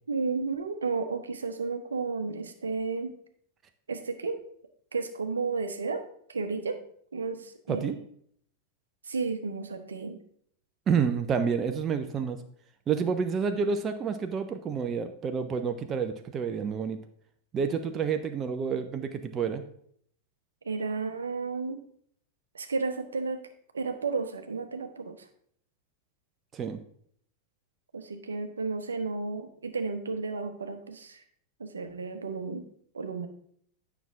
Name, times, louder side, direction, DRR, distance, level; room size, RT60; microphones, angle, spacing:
voice 1, 0.1-3.1 3.9-4.4 4.9-6.0 6.3-6.8 7.1-8.0 9.0-10.2 20.6-21.8 22.5-23.4 23.7-25.2 27.9-31.2 31.6-32.6 32.9-33.3, right 4 dB, 70° right, 7 dB, 0.8 m, -32 dB
voice 2, 10.9-12.4 12.9-17.0 17.5-19.6 26.5-26.8, right 6 dB, 25° right, 7 dB, 0.5 m, -29 dB
9.1 x 5.8 x 3.6 m, 0.65 s
figure-of-eight pair, 90°, 0 cm